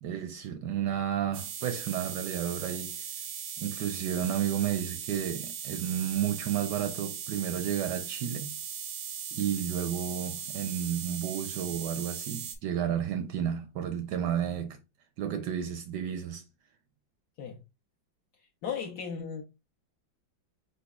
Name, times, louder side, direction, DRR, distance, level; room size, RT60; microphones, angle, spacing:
voice 1, 0.0-3.1 3.6-8.6 9.3-14.8 15.2-16.4, right 9 dB, 75° right, 1.0 m, -32 dB
sound 1, 1.3-12.6, right 8 dB, 90° right, 1.5 m, -39 dB
voice 2, 18.6-19.4, left 7 dB, 65° left, 1.0 m, -35 dB
4.4 x 4.0 x 2.3 m
omnidirectional pair, 2.1 m